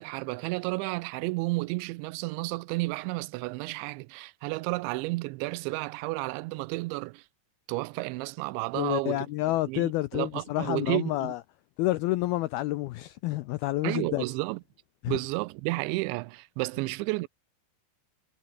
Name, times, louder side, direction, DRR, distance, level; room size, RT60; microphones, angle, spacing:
voice 1, 0.0-7.2 7.7-9.3 9.7-11.3 13.8-14.6 15.1-17.3, right 23 dB, 90° right, 3.0 m, -32 dB
voice 2, 8.7-11.4 11.8-14.2 15.0-15.2, left 17 dB, 90° left, 2.2 m, -29 dB
omnidirectional pair, 5.2 m